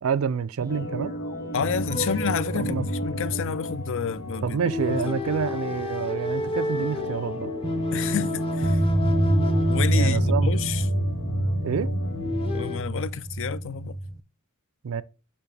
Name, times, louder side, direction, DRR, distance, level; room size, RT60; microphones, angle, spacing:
voice 1, 0.0-1.1 2.6-2.9 4.4-7.5 9.9-10.5 11.6-11.9 14.8-15.0, right 6 dB, 70° right, 0.4 m, -28 dB
sound 1, 0.6-6.0 6.3-6.4 7.6-14.2, right 1 dB, 15° right, 0.5 m, -27 dB
Organ, 0.7-12.8, left 2 dB, 90° left, 0.8 m, -36 dB
voice 2, 1.5-4.6 4.9-5.3 7.9-8.8 9.7-10.8 12.5-14.0, left 7 dB, 60° left, 0.5 m, -30 dB
sound 2, 1.9-3.5 4.6-10.7 12.1-12.8, left 2 dB, 25° left, 0.8 m, -32 dB
6.9 x 5.7 x 3.2 m
head